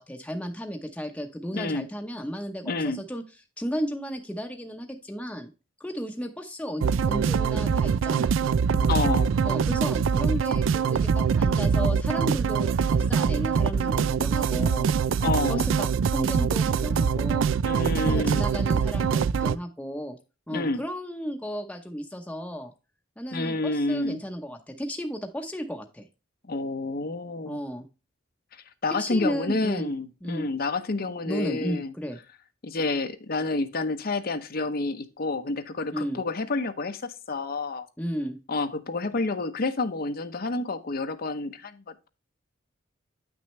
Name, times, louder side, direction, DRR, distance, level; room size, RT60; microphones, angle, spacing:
voice 1, 0.0-3.2 3.6-5.5 5.8-8.3 9.4-14.9 15.5-17.5 18.1-20.2 20.5-22.7 23.2-26.1 27.4-27.9 29.0-29.9 30.2-30.5 31.3-32.2 35.9-36.2 38.0-38.4, equal, 5° left, 3 dB, 0.8 m, -34 dB
voice 2, 1.5-1.9 2.6-3.0 8.8-9.3 15.2-15.7 17.6-18.5 20.5-20.8 23.3-24.2 26.5-27.6 28.5-31.9 32.6-37.9 38.5-42.1, left 3 dB, 50° left, 10 dB, 0.8 m, -29 dB
sound 1, 6.8-19.6, right 6 dB, 80° right, 0.4 m, -24 dB
9.1 x 6.2 x 3.1 m, 0.31 s
head